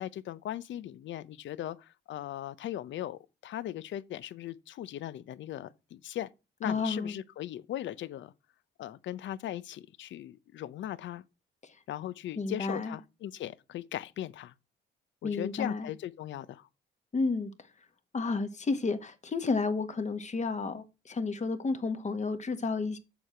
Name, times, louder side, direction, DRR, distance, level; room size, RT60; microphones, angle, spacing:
voice 1, 0.0-6.3 6.6-8.3 8.8-11.2 11.9-14.5 15.2-16.7, left 12 dB, 70° left, 0.7 m, -38 dB
voice 2, 6.6-7.2 11.6-11.8 12.4-13.0 15.2-15.9 17.1-17.5 18.1-23.0, left 4 dB, 35° left, 1.3 m, -31 dB
7.1 x 6.7 x 4.4 m
cardioid pair, 90°, 20 cm